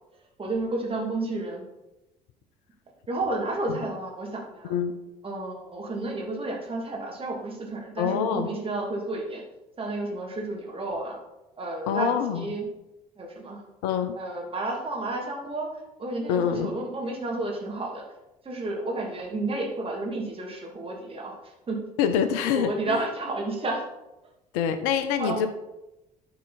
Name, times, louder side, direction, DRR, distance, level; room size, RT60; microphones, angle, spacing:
voice 1, 0.4-1.6 3.1-4.7 5.2-9.4 9.8-11.2 11.6-12.6 13.2-13.6 14.2-18.0 18.4-21.8 22.5-23.9 25.2-25.5, right 2 dB, 25° right, -1 dB, 2.7 m, -31 dB
voice 2, 8.0-8.5 11.9-12.5 13.8-14.2 16.3-16.7 22.0-23.0 24.5-25.5, left 8 dB, 60° left, 10 dB, 0.7 m, -25 dB
12.5 x 4.8 x 4.2 m, 0.96 s
figure-of-eight pair, 55°, 21 cm